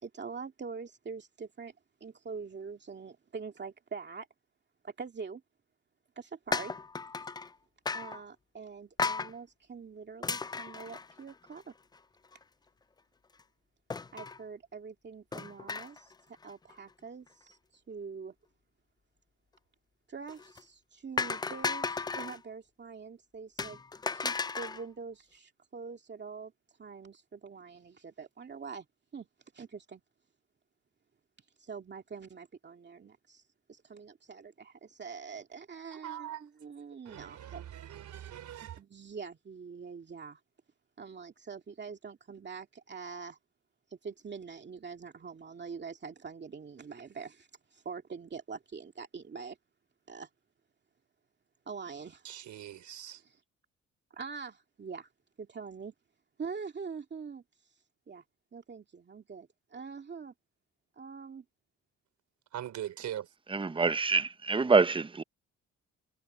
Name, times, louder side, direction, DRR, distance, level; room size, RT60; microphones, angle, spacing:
voice 1, 0.0-1.7 2.0-4.3 4.8-5.4 6.2-6.7 7.9-11.7 14.1-18.3 20.1-23.8 24.1-26.5 26.8-28.9 29.1-29.3 29.5-30.0 31.6-33.4 33.7-37.6 38.8-40.4 41.0-43.4 43.9-49.6 50.1-50.3 51.7-52.3 53.2-53.4 54.1-55.1 55.4-55.9 56.4-57.4 58.1-58.2 58.5-60.3 61.0-61.4, right 5 dB, 35° right, 2.3 m, -44 dB
sound 1, 6.5-7.5 7.9-8.2 9.0-9.3 10.2-11.6 12.0-12.1 12.3-12.4 13.9-14.4 15.3-16.1 16.4-16.7 20.3-20.6 21.2-22.4 23.6-24.8, left 4 dB, 15° left, 0.3 m, -35 dB
voice 2, 35.9-36.5 37.0-38.8 52.2-53.2 62.5-63.3, right 11 dB, 70° right, 4.0 m, -41 dB
voice 3, 63.5-65.2, right 4 dB, 15° right, 0.8 m, -26 dB
cardioid pair, 90°, 30 cm